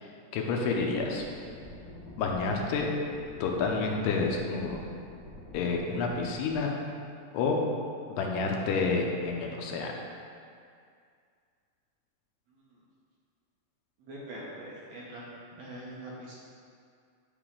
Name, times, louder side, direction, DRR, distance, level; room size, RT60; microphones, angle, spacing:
voice 1, 0.0-1.2 2.2-2.9 3.4-4.8 5.5-6.8 7.3-7.6 8.1-9.9, left 4 dB, 85° left, 1 dB, 2.3 m, -29 dB
sound 1, 0.9-6.5, left 1 dB, 35° left, 1.7 m, -47 dB
voice 2, 14.0-16.3, right 1 dB, 65° right, -5 dB, 1.9 m, -43 dB
9.0 x 5.0 x 3.7 m, 2.3 s
omnidirectional pair, 3.9 m